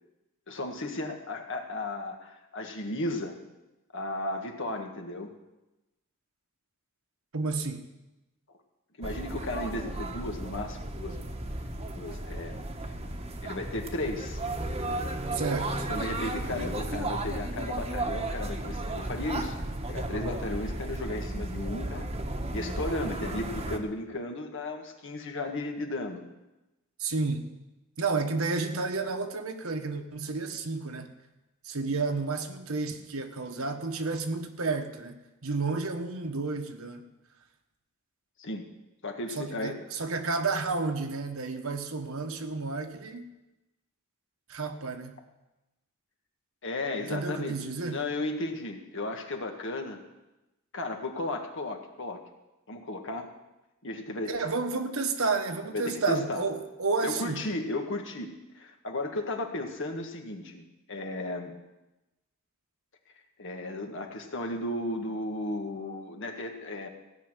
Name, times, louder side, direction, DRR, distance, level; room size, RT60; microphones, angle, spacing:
voice 1, 0.5-3.4 3.9-5.3 9.0-11.2 11.9-12.6 13.4-14.4 15.9-19.5 19.9-22.1 22.5-26.2 38.4-38.6 39.0-39.8 46.6-47.6 47.9-50.0 50.7-52.2 52.7-53.3 53.8-54.3 55.7-56.5 57.0-61.5 63.4-66.9, left 2 dB, 60° left, 4 dB, 1.7 m, -35 dB
voice 2, 7.3-7.9 15.3-15.9 27.0-27.5 28.0-31.1 31.6-37.1 39.4-43.3 44.5-45.1 47.1-48.0 54.3-57.4, right 3 dB, 70° right, 5 dB, 1.3 m, -31 dB
sound 1, 9.0-23.8, right 1 dB, 30° right, 1.2 m, -34 dB
16.0 x 6.3 x 9.0 m, 1.0 s
head